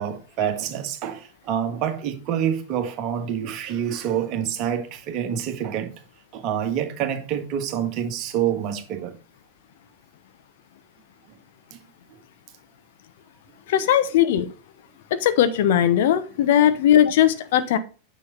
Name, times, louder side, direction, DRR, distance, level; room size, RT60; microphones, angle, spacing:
voice 1, 0.0-5.9 6.3-9.1, right 9 dB, 40° right, 1.7 m, -27 dB
voice 2, 13.7-14.5 15.1-17.8, left 10 dB, 55° left, 1.0 m, -19 dB
9.5 x 6.3 x 4.0 m
figure-of-eight pair, 90°, 0 cm